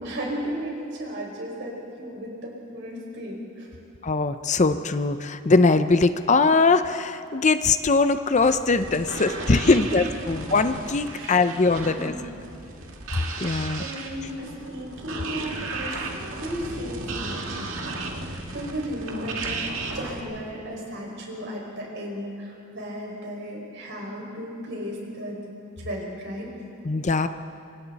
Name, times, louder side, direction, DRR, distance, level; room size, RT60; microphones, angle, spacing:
voice 1, 0.0-3.7 9.9-10.0 10.2-10.3 11.1-11.5 11.8-12.3 13.4-25.4 25.8-26.5, equal, 65° right, -2 dB, 5.6 m, -35 dB
voice 2, 4.0-12.1 13.4-13.8 26.8-27.3, left 3 dB, 35° left, 10 dB, 0.6 m, -21 dB
sound 1, 8.3-20.2, right 3 dB, 80° right, 2.1 m, -35 dB
27.0 x 26.0 x 4.1 m, 2.5 s
head